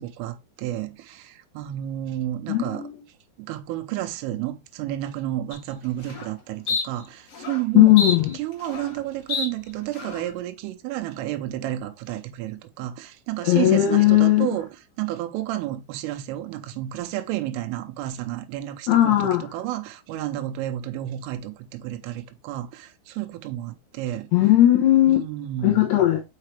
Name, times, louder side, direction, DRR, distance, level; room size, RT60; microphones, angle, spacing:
voice 1, 0.0-2.9 3.4-8.0 8.3-24.3 25.1-25.9, right 13 dB, 80° right, 3.1 m, -31 dB
voice 2, 2.5-3.0 7.8-8.3 13.4-14.5 18.9-19.5 24.3-25.2 25.6-26.2, left 14 dB, 80° left, 2.5 m, -17 dB
sound 1, 5.5-5.6 6.0-6.3 6.7-6.8 7.3-7.6 8.0-9.0 9.3-9.5 9.9-10.3, left 3 dB, 50° left, 2.0 m, -28 dB
6.7 x 5.6 x 3.2 m
omnidirectional pair, 5.8 m